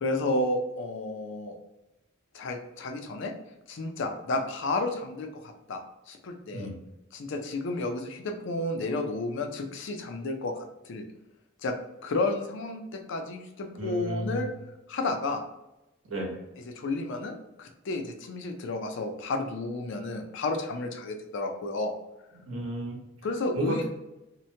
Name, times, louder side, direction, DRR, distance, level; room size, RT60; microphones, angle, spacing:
voice 1, 0.0-1.5 2.3-3.3 3.7-5.8 6.1-6.7 7.1-11.0 11.6-11.7 12.0-14.5 14.9-15.4 16.7-21.9 23.2-23.8, left 2 dB, 65° left, 5 dB, 0.4 m, -31 dB
voice 2, 13.8-14.5 16.1-16.4 22.3-23.1 23.5-23.8, equal, 75° right, -2 dB, 1.0 m, -33 dB
2.9 x 2.1 x 2.7 m, 0.96 s
head